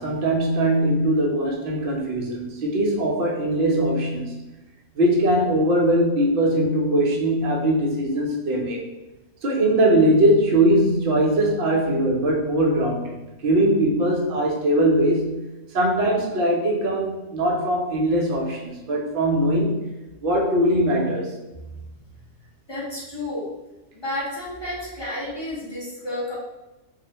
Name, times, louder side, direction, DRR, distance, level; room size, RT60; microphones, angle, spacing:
voice 1, 0.0-4.3 4.9-8.9 9.4-13.2 13.4-15.4 15.7-19.8 20.2-21.4, right 1 dB, 70° right, -1 dB, 0.5 m, -21 dB
voice 2, 22.7-23.4 23.9-26.3, left 1 dB, 30° left, -9 dB, 0.5 m, -31 dB
2.4 x 2.0 x 2.8 m, 1.0 s
omnidirectional pair, 1.5 m